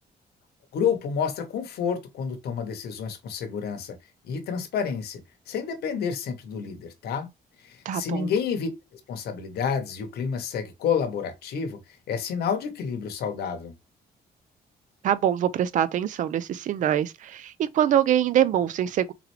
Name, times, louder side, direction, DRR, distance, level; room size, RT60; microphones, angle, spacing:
voice 1, 0.7-4.0 4.2-5.2 5.5-7.3 7.6-11.8 12.1-13.7, left 7 dB, 80° left, 0.9 m, -29 dB
voice 2, 7.9-8.3 15.0-19.1, right 10 dB, 50° right, 0.4 m, -24 dB
3.6 x 3.1 x 3.1 m
cardioid pair, 170°, 16 cm